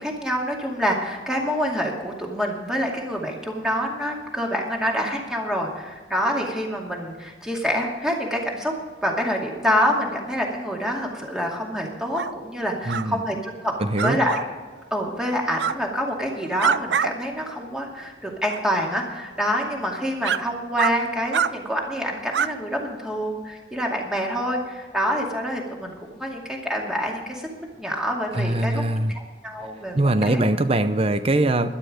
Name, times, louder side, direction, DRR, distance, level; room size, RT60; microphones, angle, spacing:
voice 1, 0.0-8.7 9.0-13.7 14.0-14.4 14.9-25.9 26.2-28.8 29.1-30.4, equal, 5° right, -1 dB, 2.3 m, -26 dB
sound 1, 12.1-12.3 12.9-13.1 13.9-14.4 15.5-15.8 16.3-17.1 17.5-17.6 18.4-18.6 19.4-19.5 20.2-20.4 20.8-20.9 21.3-21.5 22.3-22.5, right 7 dB, 70° right, 0.5 m, -25 dB
voice 2, 12.9-13.2 13.8-14.2 28.3-29.1 29.9-31.8, right 1 dB, 35° right, 11 dB, 0.7 m, -22 dB
12.5 x 11.5 x 5.1 m, 1.4 s
head